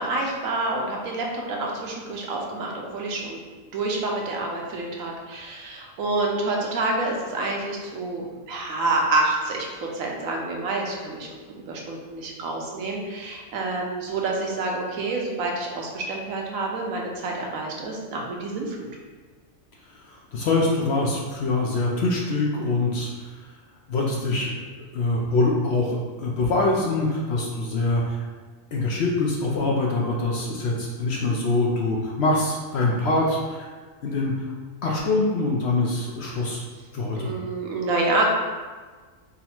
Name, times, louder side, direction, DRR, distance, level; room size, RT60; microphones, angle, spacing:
voice 1, 0.0-3.4 3.7-11.3 11.7-18.9 37.2-38.2, right 2 dB, 75° right, -1 dB, 1.1 m, -28 dB
voice 2, 20.1-23.4 23.9-24.6 24.9-28.3 28.7-33.7 34.0-34.3 34.8-36.6 36.9-37.3, left 2 dB, 65° left, -2 dB, 0.7 m, -24 dB
3.9 x 2.0 x 4.3 m, 1.4 s
omnidirectional pair, 1.5 m